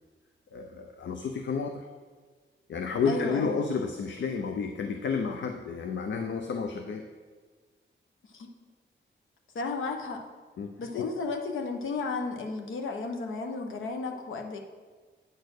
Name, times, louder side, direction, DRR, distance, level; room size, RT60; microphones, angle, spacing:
voice 1, 0.5-1.9 2.7-7.0 10.6-11.1, left 5 dB, 65° left, 5 dB, 0.6 m, -31 dB
voice 2, 3.0-3.6 8.3-8.5 9.5-10.2 10.8-14.6, left 3 dB, 85° left, 3 dB, 1.0 m, -33 dB
9.2 x 4.3 x 6.5 m, 1.5 s
wide cardioid pair, 145°, 20 cm